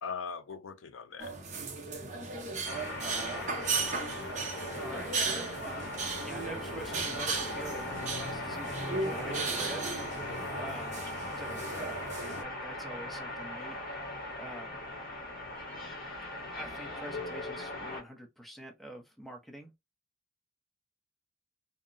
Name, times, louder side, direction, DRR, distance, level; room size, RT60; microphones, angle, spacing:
voice 1, 0.0-1.4 10.4-10.7, left 6 dB, 80° left, 0.5 m, -41 dB
sound 1, 1.2-12.4, right 4 dB, 40° right, 0.6 m, -36 dB
sound 2, 2.6-18.0, left 1 dB, 50° left, 0.9 m, -39 dB
voice 2, 4.7-5.9 6.3-9.9 10.6-10.9 11.4-12.0 12.4-13.8 14.4-14.8 16.5-19.7, right 1 dB, ahead, 0.6 m, -46 dB
2.8 x 2.0 x 2.5 m
head